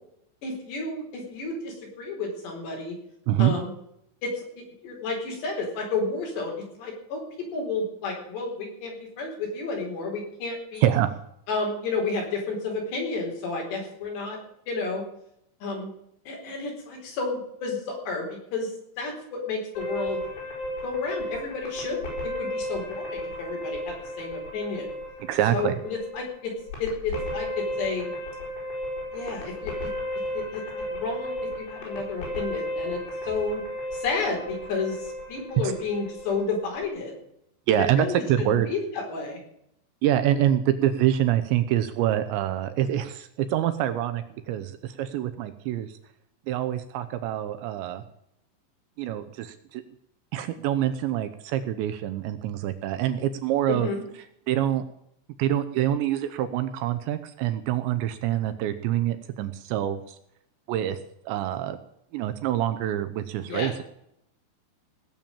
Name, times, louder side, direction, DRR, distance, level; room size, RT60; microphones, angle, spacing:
voice 1, 0.4-3.0 3.4-3.7 4.2-10.9 11.5-14.4 14.7-15.0 15.6-15.9 16.3-18.7 19.0-20.2 20.8-24.9 25.5-26.5 26.8-28.1 29.1-29.7 30.3-33.6 33.9-37.1 37.7-39.4 53.7-54.0 63.5-63.7, left 3 dB, 60° left, 0 dB, 6.4 m, -31 dB
voice 2, 3.3-3.6 10.8-11.1 25.3-25.8 35.6-35.7 37.7-38.7 40.0-46.0 46.5-48.0 49.0-49.8 50.3-53.9 54.5-54.8 55.4-60.2 60.7-61.0 61.2-61.8 62.1-63.7, right 11 dB, 80° right, 10 dB, 2.9 m, -25 dB
sound 1, 19.8-36.8, left 1 dB, 80° left, 8.1 m, -34 dB
18.0 x 7.2 x 8.9 m, 0.75 s
omnidirectional pair, 5.6 m